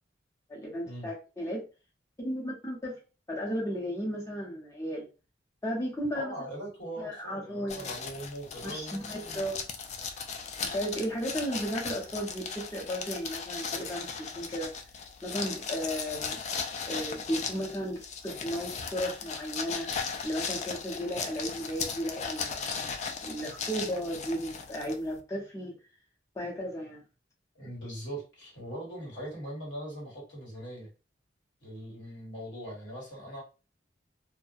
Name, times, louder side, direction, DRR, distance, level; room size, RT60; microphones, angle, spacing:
voice 1, 0.5-1.6 2.2-3.0 3.3-5.1 5.6-6.3 7.0-7.9 8.6-9.6 10.6-14.8 15.2-16.4 16.9-20.0 20.2-25.8 26.3-27.0, equal, 15° left, -2 dB, 0.7 m, -35 dB
voice 2, 6.1-9.4 27.5-30.9 31.6-33.4, right 1 dB, 75° left, -4 dB, 1.5 m, -41 dB
sound 1, 7.7-25.2, left 5 dB, 40° left, 0.3 m, -37 dB
2.4 x 2.0 x 2.6 m, 0.32 s
head